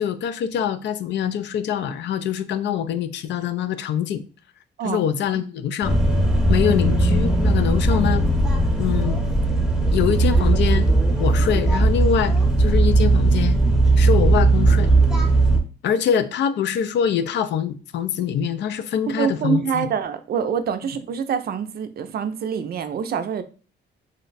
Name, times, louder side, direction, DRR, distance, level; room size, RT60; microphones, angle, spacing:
voice 1, 0.0-4.2 4.8-6.0 6.5-8.3 8.8-9.2 9.9-10.9 11.2-13.6 14.0-14.9 15.8-19.9, left 8 dB, 65° left, 0.4 m, -24 dB
sound 1, 5.8-15.6, right 2 dB, 5° right, 0.7 m, -18 dB
voice 2, 19.2-23.4, right 7 dB, 50° right, 0.4 m, -25 dB
2.5 x 2.1 x 3.9 m
cardioid pair, 90°, 20 cm